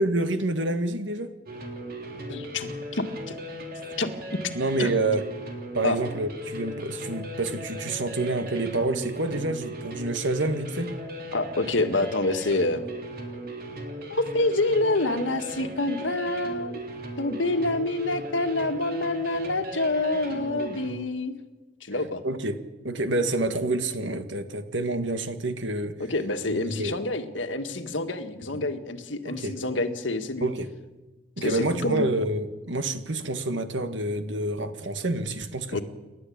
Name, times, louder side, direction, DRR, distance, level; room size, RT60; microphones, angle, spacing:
voice 1, 0.0-1.3 4.5-5.2 5.7-10.9 22.2-22.6 22.8-26.0 26.5-27.0 29.3-29.6 30.4-30.7 31.4-35.8, right 2 dB, 75° right, 9 dB, 1.8 m, -28 dB
sound 1, 1.5-20.9, equal, 55° right, 3.7 m, -37 dB
voice 2, 2.3-3.3 4.0-4.1 4.8-4.9 5.8-6.0 11.3-12.8 14.1-16.8 17.2-21.3 21.8-22.2 26.0-30.5 31.4-32.1 35.7-35.8, left 2 dB, 80° left, 7 dB, 1.9 m, -27 dB
29.0 x 12.0 x 8.7 m, 1.2 s
head